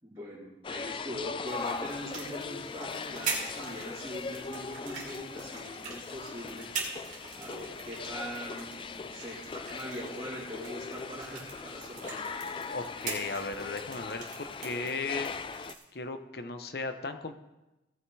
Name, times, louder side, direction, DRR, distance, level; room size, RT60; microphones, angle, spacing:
voice 1, 0.0-6.7 7.3-12.7, equal, 20° right, -12 dB, 3.2 m, -42 dB
sound 1, 0.6-15.7, left 5 dB, 30° left, 0.3 m, -40 dB
sound 2, 1.5-15.8, right 4 dB, 40° right, 2.4 m, -43 dB
voice 2, 12.7-15.3 15.9-17.3, left 3 dB, 60° left, 8 dB, 0.8 m, -36 dB
16.5 x 5.7 x 4.8 m, 1.0 s
head